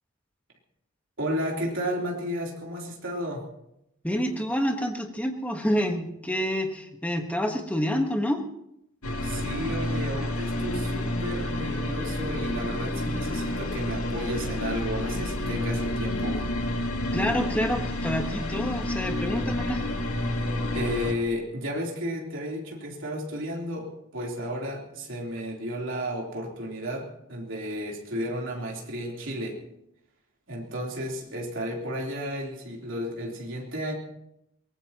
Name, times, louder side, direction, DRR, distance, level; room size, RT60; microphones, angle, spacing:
voice 1, 1.2-3.5 9.2-16.4 20.7-29.6 30.5-33.9, equal, 65° right, -1 dB, 3.5 m, -33 dB
voice 2, 4.0-8.4 17.1-19.8, equal, 5° left, 3 dB, 1.4 m, -28 dB
sound 1, 9.0-21.1, left 1 dB, 90° left, 2.1 m, -29 dB
22.5 x 18.5 x 3.0 m, 0.80 s
head